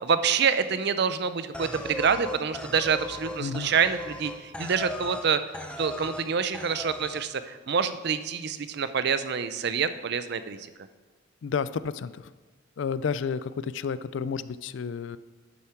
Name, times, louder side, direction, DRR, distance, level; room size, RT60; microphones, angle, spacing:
voice 1, 0.0-5.4 5.8-10.6, right 6 dB, 55° right, 12 dB, 0.5 m, -27 dB
sound 1, 1.5-5.3 5.5-6.3 6.5-7.3, left 1 dB, 5° left, 0.6 m, -37 dB
voice 2, 3.4-3.7 11.4-12.3 12.8-15.2, left 6 dB, 65° left, 16 dB, 0.4 m, -31 dB
11.5 x 7.0 x 4.5 m, 1.3 s
head